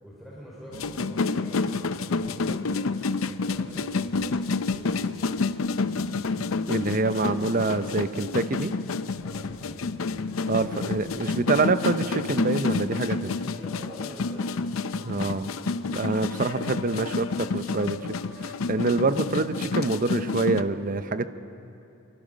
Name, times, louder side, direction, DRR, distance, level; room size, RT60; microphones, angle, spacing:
voice 1, 0.0-5.4 5.7-6.2 9.2-10.3 13.5-14.6, equal, ahead, -7 dB, 3.8 m, -46 dB
sound 1, 0.7-20.6, left 4 dB, 85° left, 0.6 m, -29 dB
voice 2, 6.7-8.7 10.5-13.4 15.0-15.5 15.9-18.0 18.4-21.3, right 3 dB, 40° right, 12 dB, 0.7 m, -26 dB
24.0 x 24.0 x 5.2 m, 2.7 s
head